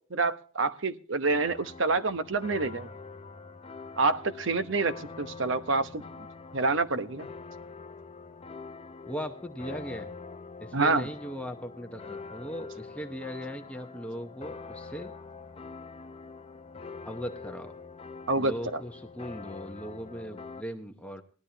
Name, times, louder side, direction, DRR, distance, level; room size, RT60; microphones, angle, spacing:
voice 1, 0.1-2.9 4.0-6.0 6.5-7.3 10.7-11.1 18.3-18.8, right 3 dB, 65° right, 0.9 m, -27 dB
sound 1, 1.3-20.6, left 4 dB, 30° left, 0.6 m, -45 dB
voice 2, 9.1-10.1 10.6-15.1 17.0-17.7 18.3-21.2, equal, 5° left, 0.9 m, -38 dB
19.0 x 12.0 x 2.8 m
head